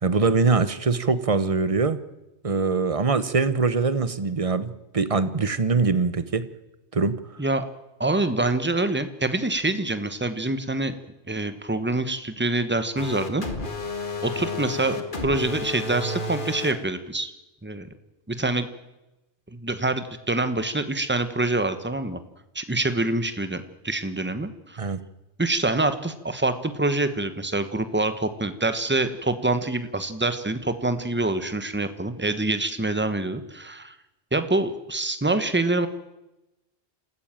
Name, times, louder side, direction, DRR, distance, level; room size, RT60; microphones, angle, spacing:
voice 1, 0.0-2.0 2.4-6.5 6.9-7.2 24.8-25.0, right 4 dB, 35° right, 14 dB, 1.0 m, -23 dB
voice 2, 8.0-10.9 11.3-13.4 14.2-17.3 17.6-17.9 18.3-18.7 19.5-22.2 22.5-24.9 25.4-33.9 34.3-35.9, right 2 dB, 10° right, 10 dB, 1.1 m, -26 dB
sound 1, 13.0-16.7, left 3 dB, 50° left, 2.1 m, -31 dB
27.0 x 14.5 x 9.0 m, 1.0 s
omnidirectional pair, 1.1 m